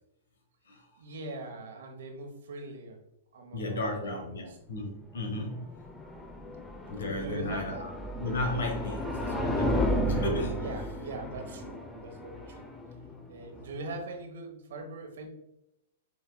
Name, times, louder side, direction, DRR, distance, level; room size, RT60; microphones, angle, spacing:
voice 1, 1.0-3.0 3.3-4.4 7.2-7.8 10.6-12.7 13.3-15.3, right 2 dB, 70° right, 3 dB, 1.1 m, -41 dB
voice 2, 3.5-5.7 6.9-10.6, left 2 dB, 75° left, 2 dB, 1.1 m, -34 dB
sound 1, 5.1-14.1, equal, 10° left, 0.6 m, -33 dB
7.1 x 3.2 x 2.3 m, 0.84 s
hypercardioid pair, 115°, 0 cm